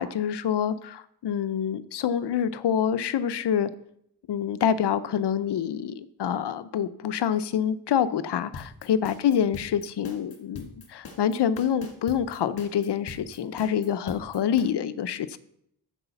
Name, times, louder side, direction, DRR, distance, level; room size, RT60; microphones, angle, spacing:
voice 1, 0.0-3.7 4.3-15.4, left 8 dB, 80° left, 14 dB, 0.6 m, -26 dB
sound 1, 8.5-14.6, left 4 dB, 60° left, 2.1 m, -43 dB
10.5 x 4.9 x 6.9 m, 0.73 s
wide cardioid pair, 105°, 41 cm